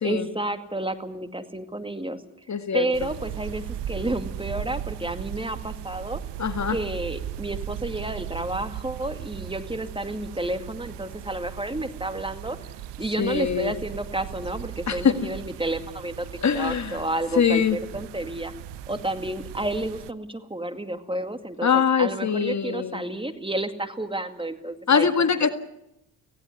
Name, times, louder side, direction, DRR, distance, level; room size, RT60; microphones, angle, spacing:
voice 1, 0.0-2.2 2.7-6.2 6.7-12.6 13.0-16.3 16.6-18.5 18.9-25.1 25.4-25.5, right 1 dB, 10° right, 8 dB, 2.2 m, -31 dB
voice 2, 2.5-2.9 6.4-6.8 13.2-13.7 14.9-15.1 16.4-17.0 17.4-17.8 21.6-23.0 24.9-25.5, left 6 dB, 40° left, 10 dB, 1.8 m, -22 dB
sound 1, 2.9-20.1, right 11 dB, 70° right, 1.0 m, -37 dB
18.0 x 17.0 x 9.7 m, 0.85 s
hypercardioid pair, 55°, 42 cm